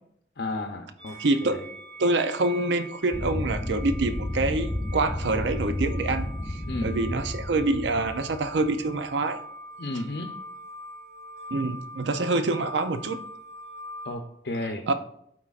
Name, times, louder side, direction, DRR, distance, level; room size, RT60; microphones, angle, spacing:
voice 1, 0.4-1.2 1.4-1.6 6.7-6.9 9.8-10.3 14.0-14.9, left 2 dB, 60° left, 4 dB, 0.7 m, -32 dB
sound 1, 1.0-14.1, equal, 30° right, 3.0 m, -43 dB
voice 2, 1.2-1.6 2.0-9.4 11.5-13.2 14.9-15.0, right 2 dB, 85° right, 9 dB, 0.5 m, -26 dB
sound 2, 3.1-8.9, left 1 dB, 5° left, 0.7 m, -32 dB
12.5 x 4.5 x 2.4 m, 0.71 s
head